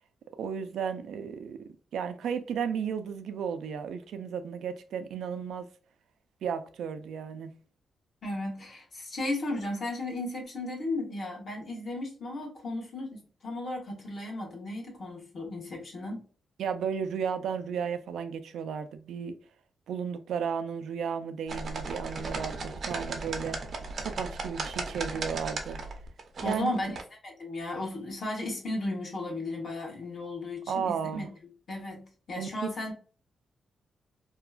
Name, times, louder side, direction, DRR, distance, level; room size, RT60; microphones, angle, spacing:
voice 1, 0.4-5.7 6.4-7.5 16.6-19.4 19.9-23.6 24.0-25.8 26.4-26.7 30.7-31.3 32.4-32.7, right 7 dB, 90° right, 0.4 m, -34 dB
voice 2, 8.2-16.2 26.4-31.3 31.7-32.9, left 2 dB, 50° left, 1.2 m, -35 dB
sound 1, 21.5-27.0, right 3 dB, 50° right, 0.6 m, -36 dB
2.8 x 2.3 x 2.4 m
cardioid pair, 120°, 0 cm